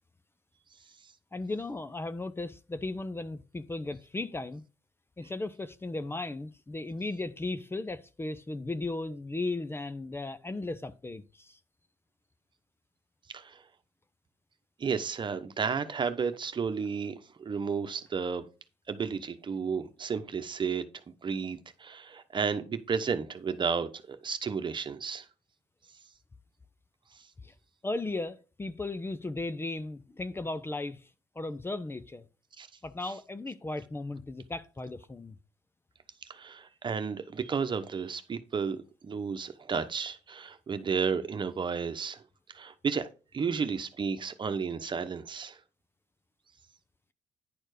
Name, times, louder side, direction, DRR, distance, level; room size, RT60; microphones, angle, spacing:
voice 1, 1.3-4.6 5.2-11.6 27.4-27.5 27.8-31.1 31.3-32.2 32.8-35.4, left 2 dB, 20° left, 0.7 m, -36 dB
voice 2, 14.8-18.5 18.9-20.8 21.2-25.2 32.6-32.7 36.3-42.2 42.5-43.1 43.3-45.6, right 6 dB, 40° right, 1.1 m, -32 dB
10.5 x 4.4 x 5.0 m
supercardioid pair, 65°, 12 cm